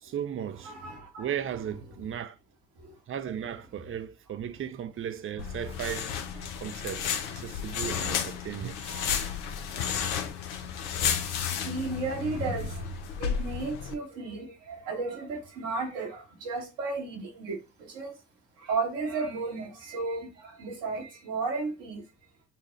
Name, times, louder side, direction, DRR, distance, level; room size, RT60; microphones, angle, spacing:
voice 1, 0.0-0.7 1.2-2.4 3.1-6.1 6.6-8.8, right 9 dB, 40° right, 0.5 m, -36 dB
voice 2, 0.6-1.3 2.8-2.9 6.4-6.5 7.7-7.8 8.8-10.3 11.1-18.1 18.6-22.0, right 3 dB, 75° right, 1.4 m, -35 dB
sound 1, 5.4-13.9, left 8 dB, 85° left, 0.5 m, -32 dB
6.8 x 2.3 x 3.1 m
hypercardioid pair, 40°, 34 cm